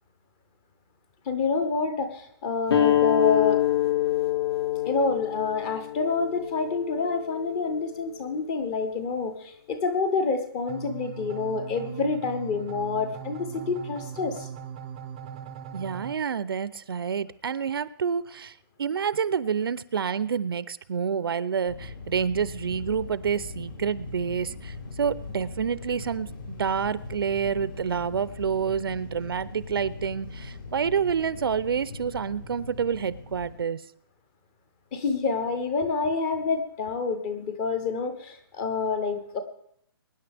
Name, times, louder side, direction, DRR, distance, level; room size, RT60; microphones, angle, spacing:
voice 1, 1.3-3.6 4.8-14.5 34.9-39.4, left 4 dB, 15° left, 10 dB, 0.7 m, -28 dB
sound 1, 2.7-7.8, left 12 dB, 85° left, 2.0 m, -26 dB
sound 2, 10.7-16.1, right 9 dB, 15° right, 0.6 m, -39 dB
voice 2, 15.7-33.8, right 7 dB, 65° right, 17 dB, 0.6 m, -28 dB
sound 3, 21.6-33.6, left 3 dB, 60° left, 4.9 m, -40 dB
23.0 x 10.0 x 3.5 m, 0.68 s
hypercardioid pair, 175°, 13 cm